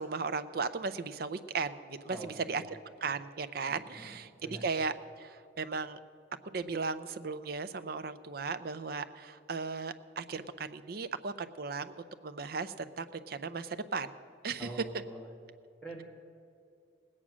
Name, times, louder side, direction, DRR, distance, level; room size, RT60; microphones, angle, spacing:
voice 1, 0.0-2.6 3.0-6.0 6.4-11.9 12.2-14.1 14.4-14.7, right 4 dB, 55° right, 11 dB, 0.5 m, -36 dB
voice 2, 2.1-2.7 3.7-4.2 4.4-4.6 14.6-15.3 15.8-16.0, right 1 dB, 5° left, -3 dB, 1.9 m, -45 dB
19.0 x 8.7 x 6.1 m, 2.5 s
head